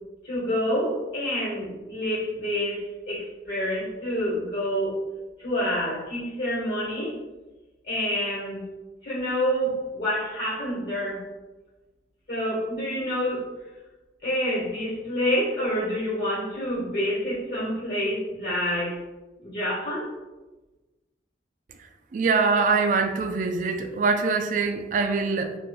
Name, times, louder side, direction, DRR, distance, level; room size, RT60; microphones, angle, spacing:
voice 1, 0.2-4.9 5.4-7.1 7.8-8.6 9.0-11.2 12.3-13.5 14.2-19.0 19.4-20.1, equal, 50° left, -8 dB, 1.1 m, -27 dB
voice 2, 22.1-25.6, right 4 dB, 45° right, 6 dB, 0.3 m, -23 dB
2.8 x 2.3 x 3.6 m, 1.1 s
head